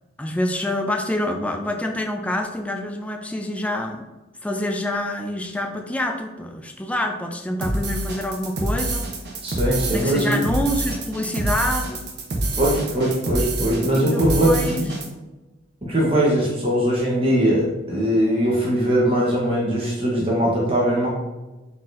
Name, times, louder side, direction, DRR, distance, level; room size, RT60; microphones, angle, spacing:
voice 1, 0.2-4.0 4.4-9.1 9.9-12.1 13.9-14.9, left 1 dB, 5° left, 2 dB, 0.4 m, -26 dB
sound 1, 7.6-15.1, right 2 dB, 60° right, 0.8 m, -26 dB
voice 2, 9.4-10.4 12.6-14.9 15.8-21.1, right 1 dB, 30° right, -4 dB, 0.8 m, -21 dB
4.1 x 4.0 x 2.5 m, 1.1 s
head